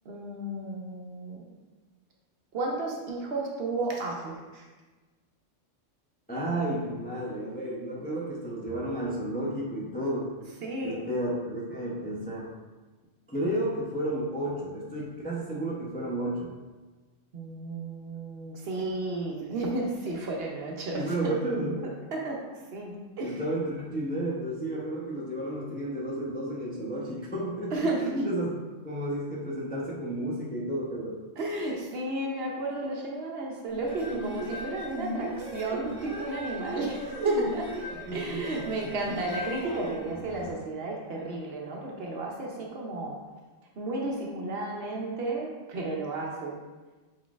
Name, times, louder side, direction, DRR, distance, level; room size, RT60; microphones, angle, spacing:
voice 1, 0.1-1.4 2.5-4.7 10.6-11.0 17.3-21.0 21.8-22.4 22.7-23.4 27.7-28.0 31.4-37.7 38.1-43.2 43.8-46.6, right 2 dB, 60° right, -1 dB, 0.8 m, -33 dB
voice 2, 6.3-10.3 10.8-12.5 13.3-16.5 20.9-21.8 23.2-28.5 28.8-31.2 38.1-38.9, right 1 dB, 15° left, -5 dB, 0.3 m, -32 dB
sound 1, 33.7-40.5, equal, 30° right, 0.7 m, -37 dB
4.5 x 4.0 x 2.4 m, 1.3 s
omnidirectional pair, 1.3 m